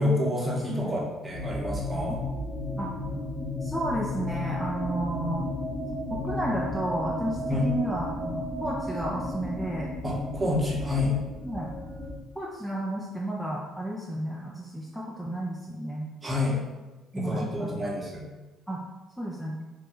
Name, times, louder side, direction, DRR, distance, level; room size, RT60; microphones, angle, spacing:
voice 1, 0.0-2.2 7.5-7.7 10.0-11.2 16.2-16.6 17.1-18.2, left 2 dB, 25° right, -3 dB, 0.9 m, -28 dB
sound 1, 1.3-12.1, left 1 dB, 25° left, 0.9 m, -33 dB
voice 2, 3.6-5.4 6.1-9.9 11.4-11.7 12.4-16.0 17.1-17.8 18.7-18.8 19.2-19.5, right 1 dB, ahead, -4 dB, 0.5 m, -32 dB
2.6 x 2.1 x 3.5 m, 1.1 s
hypercardioid pair, 55°, 0 cm